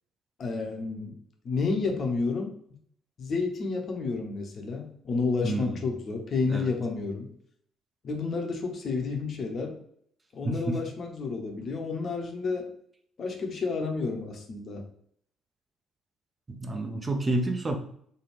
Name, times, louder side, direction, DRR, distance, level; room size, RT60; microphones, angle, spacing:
voice 1, 0.4-1.1 1.4-2.5 3.2-7.3 8.0-9.8 10.3-12.7 13.2-14.8, left 4 dB, 45° left, 3 dB, 0.6 m, -30 dB
voice 2, 5.4-5.8 6.5-6.7 10.4-10.7 16.5-17.8, right 2 dB, 25° right, 4 dB, 0.5 m, -29 dB
3.2 x 2.2 x 3.1 m, 0.66 s
figure-of-eight pair, 45°, 0 cm